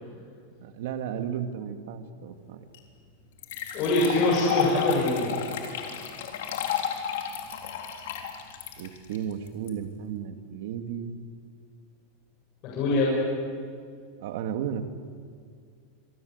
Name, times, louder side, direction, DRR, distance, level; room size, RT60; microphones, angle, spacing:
voice 1, 0.6-2.6 8.8-11.1 14.2-14.8, right 9 dB, 65° right, 8 dB, 2.2 m, -34 dB
sound 1, 2.7-2.8 3.4-9.7, left 8 dB, 75° left, 3.7 m, -32 dB
voice 2, 3.7-5.3 12.7-13.1, left 2 dB, 40° left, -4 dB, 7.5 m, -23 dB
26.5 x 23.5 x 8.1 m, 2.1 s
supercardioid pair, 155°, 0 cm